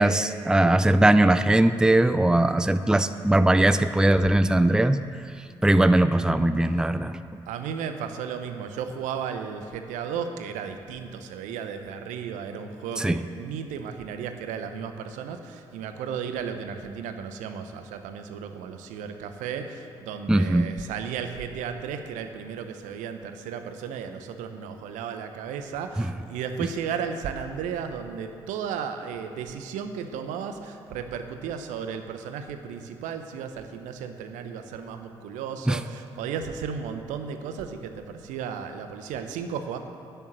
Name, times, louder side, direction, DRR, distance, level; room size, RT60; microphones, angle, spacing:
voice 1, 0.0-5.0 5.6-7.2 13.0-13.2 20.3-20.7 26.0-26.1 35.7-35.8, right 1 dB, 5° right, 12 dB, 0.5 m, -20 dB
voice 2, 7.5-39.8, right 7 dB, 70° right, 7 dB, 0.9 m, -34 dB
10.5 x 9.2 x 7.7 m, 2.4 s
figure-of-eight pair, 40°, 13 cm